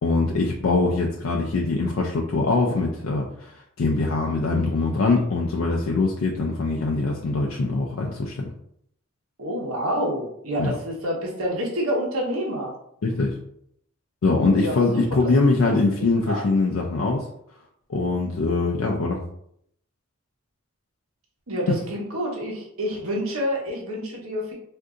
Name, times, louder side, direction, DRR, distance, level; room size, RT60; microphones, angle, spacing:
voice 1, 0.0-8.4 10.6-10.7 13.0-13.3 14.2-17.2 17.9-19.2, left 3 dB, 70° left, -1 dB, 0.4 m, -23 dB
voice 2, 9.4-12.7 14.5-14.8 15.2-15.3 15.6-15.7 16.3-16.5 21.5-24.5, equal, 80° right, -2 dB, 1.0 m, -28 dB
3.7 x 2.6 x 2.4 m, 0.70 s
head